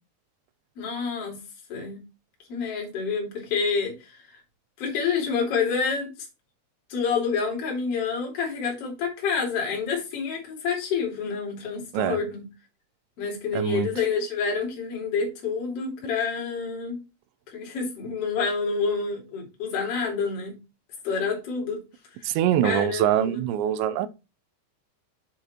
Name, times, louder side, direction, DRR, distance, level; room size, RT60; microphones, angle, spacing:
voice 1, 0.8-1.4 1.7-2.0 2.5-4.4 4.8-6.1 6.9-12.5 13.2-17.0 17.5-20.6 21.0-21.8 22.2-22.3 22.6-23.4, left 5 dB, 35° left, 3.3 m, -28 dB
voice 2, 13.5-13.9 22.2-24.1, right 11 dB, 80° right, 2.8 m, -24 dB
7.8 x 5.2 x 4.3 m
omnidirectional pair, 5.6 m